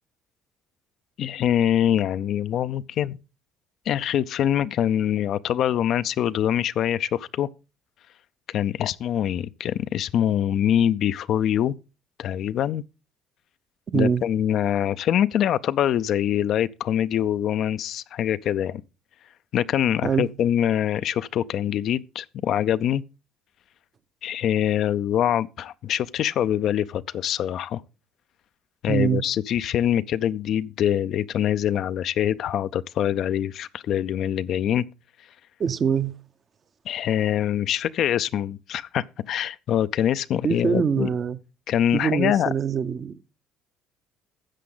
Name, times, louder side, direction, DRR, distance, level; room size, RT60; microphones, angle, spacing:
voice 1, 1.2-3.2 3.9-7.5 8.5-11.7 12.2-12.8 13.9-18.8 19.5-23.0 24.2-27.8 28.8-34.9 36.9-41.1 41.7-42.5, left 10 dB, 60° left, 0.5 m, -24 dB
voice 2, 13.9-14.2 20.0-20.3 28.9-29.2 35.6-36.1 40.4-41.4 41.9-43.2, right 7 dB, 45° right, 0.7 m, -23 dB
13.0 x 7.5 x 3.8 m
supercardioid pair, 85°, 0 cm